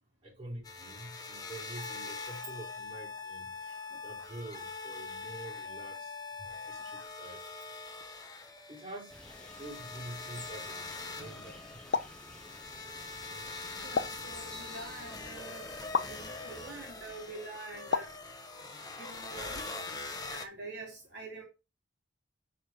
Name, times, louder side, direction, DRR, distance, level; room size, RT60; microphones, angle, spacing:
voice 1, 0.2-3.6 4.0-6.1 6.5-7.4 8.7-9.2 9.6-11.8, right 1 dB, 30° right, 4.7 m, -47 dB
sound 1, 0.6-20.4, left 3 dB, 20° left, 1.2 m, -43 dB
voice 2, 3.6-4.0 13.3-15.7 16.1-18.2 18.9-19.7 20.3-21.4, right 2 dB, 60° right, 3.0 m, -46 dB
sound 2, 9.1-16.8, left 1 dB, 5° left, 0.8 m, -52 dB
sound 3, 11.9-12.2 14.0-14.3 15.9-16.2 17.9-18.2, left 5 dB, 70° left, 0.6 m, -31 dB
9.8 x 5.0 x 4.4 m
head